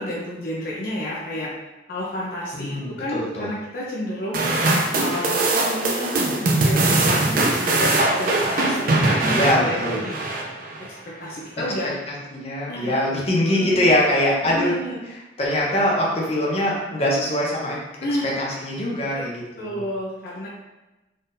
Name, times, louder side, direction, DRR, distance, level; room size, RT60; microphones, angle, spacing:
voice 1, 0.0-1.5 1.9-4.5 4.9-10.2 10.8-11.9 12.7-12.9 13.5-13.8 14.4-15.0 18.0-18.3 19.1-19.2 19.6-20.5, left 1 dB, 55° left, -6 dB, 0.7 m, -31 dB
voice 2, 2.5-3.5 9.3-10.0 12.1-14.7 15.4-17.8 18.2-19.8, left 1 dB, 35° left, -4 dB, 1.0 m, -23 dB
sound 1, 4.3-10.9, right 2 dB, 50° right, 0.6 m, -21 dB
3.9 x 3.8 x 2.6 m, 1.0 s
head